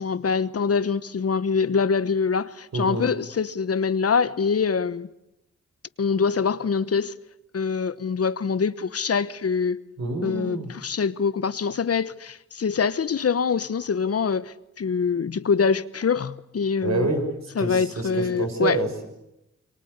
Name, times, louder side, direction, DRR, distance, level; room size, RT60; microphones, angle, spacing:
voice 1, 0.0-5.1 6.0-7.2 7.5-9.8 10.2-17.1 17.6-18.8, left 5 dB, 55° left, 1.1 m, -24 dB
voice 2, 2.7-3.0 10.0-10.7 16.8-17.2 17.6-19.1, right 3 dB, 65° right, 6.7 m, -27 dB
28.0 x 23.0 x 8.2 m
cardioid pair, 65°, 29 cm